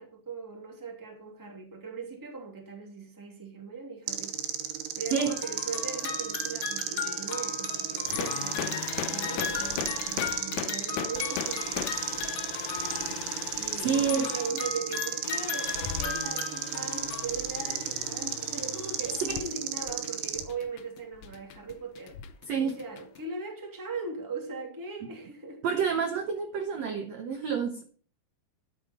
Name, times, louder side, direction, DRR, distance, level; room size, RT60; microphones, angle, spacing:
voice 1, 0.0-4.4 5.0-12.3 13.5-22.2 22.6-25.6, right 4 dB, 5° right, 1.8 m, -39 dB
sound 1, 4.1-20.4, right 10 dB, 90° right, 3.6 m, -34 dB
sound 2, 5.3-13.5 13.9-17.3, left 7 dB, 60° left, 2.0 m, -37 dB
sound 3, 8.1-23.2, left 10 dB, 90° left, 1.8 m, -39 dB
voice 2, 13.8-14.3 19.3-19.4 22.5-22.8 25.6-27.9, right 6 dB, 65° right, 1.7 m, -28 dB
12.5 x 7.5 x 4.3 m
omnidirectional pair, 4.7 m